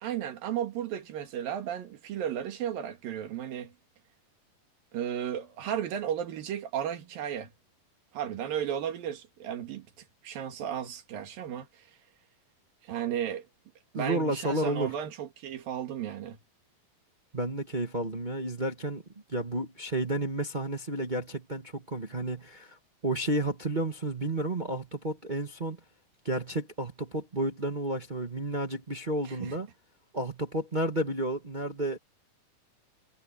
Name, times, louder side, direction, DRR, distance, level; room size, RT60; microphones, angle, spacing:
voice 1, 0.0-3.7 4.9-7.5 8.1-11.9 12.8-13.5 13.9-16.4 29.3-29.6, right 9 dB, 80° right, 3.7 m, -34 dB
voice 2, 13.9-14.9 17.3-19.0 19.3-25.8 26.2-29.7 30.1-32.0, right 1 dB, 60° right, 0.4 m, -31 dB
omnidirectional pair, 4.0 m